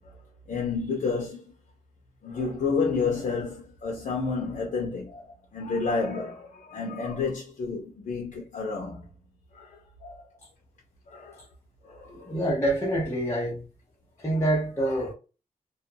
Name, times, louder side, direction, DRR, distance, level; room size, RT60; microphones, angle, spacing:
voice 1, 0.5-1.4 2.2-9.0 9.5-9.7 10.0-10.2 11.1-11.4 11.8-12.4 14.8-15.1, left 4 dB, 65° left, 0.8 m, -30 dB
voice 2, 12.2-13.6 14.2-15.1, right 1 dB, 20° left, 0.9 m, -26 dB
2.6 x 2.2 x 2.7 m
wide cardioid pair, 145°, 14 cm